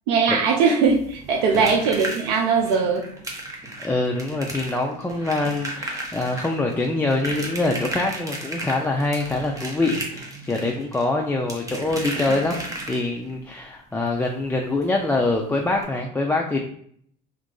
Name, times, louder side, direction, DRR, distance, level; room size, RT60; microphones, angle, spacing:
voice 1, 0.1-3.0, right 5 dB, 85° right, -1 dB, 0.6 m, -20 dB
sound 1, 0.8-13.3 14.8-14.9 15.2-15.3 15.7-15.8, right 1 dB, 15° right, 0.9 m, -34 dB
voice 2, 3.8-12.6 12.9-16.6, left 2 dB, 10° left, 0 dB, 0.4 m, -24 dB
2.9 x 2.5 x 3.7 m, 0.65 s
supercardioid pair, 100°, 20 cm